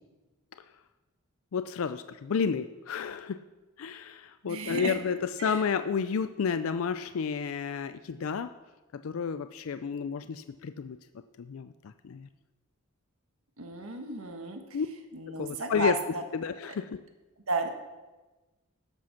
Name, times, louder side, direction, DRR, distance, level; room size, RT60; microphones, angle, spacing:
voice 1, 1.5-3.4 3.8-8.5 9.0-11.0 11.4-12.3 14.7-14.9 15.4-16.0 16.3-17.0, left 6 dB, 75° left, 10 dB, 0.4 m, -31 dB
voice 2, 4.4-5.0 5.4-5.7 13.6-14.8 15.1-16.2 17.5-17.7, right 3 dB, 80° right, 5 dB, 1.4 m, -33 dB
12.0 x 7.6 x 5.8 m, 1.2 s
head